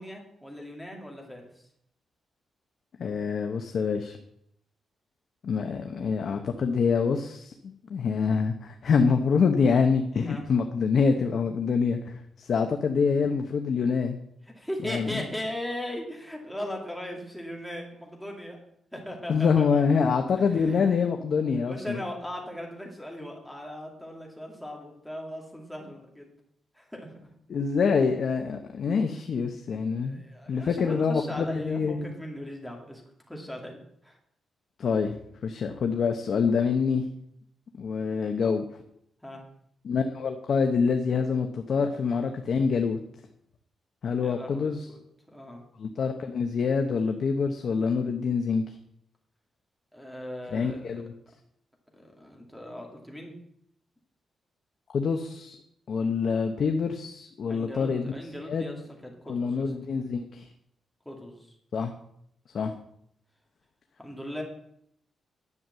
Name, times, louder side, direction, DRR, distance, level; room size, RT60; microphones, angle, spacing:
voice 1, 0.0-1.6 10.2-10.4 12.6-12.7 14.5-18.6 18.9-19.8 20.4-21.1 21.6-26.3 26.7-27.1 29.9-33.0 33.3-34.2 39.2-39.4 44.2-45.0 45.3-45.6 49.9-51.0 51.9-53.4 57.5-59.7 61.0-61.6 64.0-64.4, left 1 dB, ahead, -1 dB, 2.4 m, -38 dB
voice 2, 3.0-4.2 5.4-14.2 14.9-15.1 19.3-22.0 27.5-30.2 30.5-32.1 34.8-35.2 35.4-37.0 37.8-38.6 39.8-43.0 44.0-44.9 45.8-48.6 50.5-51.1 54.9-55.6 55.9-58.1 58.5-58.7 59.3-60.5 61.7-61.9 62.5-62.7, left 5 dB, 45° left, 5 dB, 0.9 m, -26 dB
11.0 x 7.2 x 7.7 m, 0.72 s
wide cardioid pair, 175°, 0 cm